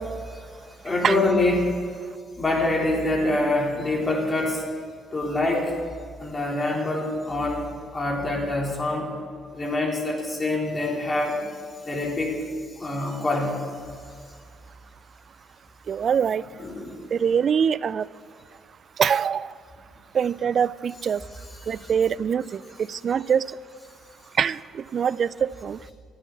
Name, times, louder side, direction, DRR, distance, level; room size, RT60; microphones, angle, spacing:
voice 1, 0.8-1.8 2.4-4.6 5.1-5.7 6.2-7.7 7.9-9.1 9.5-11.4 11.8-12.4 12.8-13.6 16.6-17.0, left 2 dB, 30° left, -2 dB, 3.7 m, -25 dB
voice 2, 15.9-16.4 17.1-18.0 19.0-19.5 20.1-21.2 21.7-22.6 22.9-23.4 24.4-25.8, right 7 dB, 55° right, 20 dB, 0.3 m, -23 dB
12.0 x 9.2 x 7.4 m, 2.1 s
hypercardioid pair, 60°, 0 cm